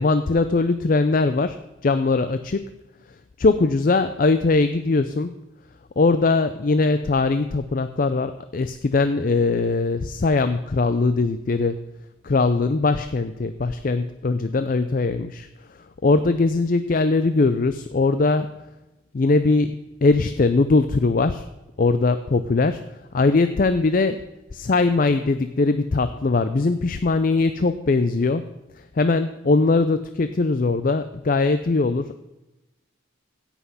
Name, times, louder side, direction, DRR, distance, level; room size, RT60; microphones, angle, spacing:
voice 1, 0.0-2.7 3.4-5.4 6.0-11.8 12.2-15.5 16.0-18.5 19.1-21.5 21.8-22.8 23.1-24.2 24.5-28.5 29.0-32.2, left 3 dB, 45° left, 11 dB, 0.4 m, -21 dB
16.5 x 5.9 x 5.6 m, 0.99 s
head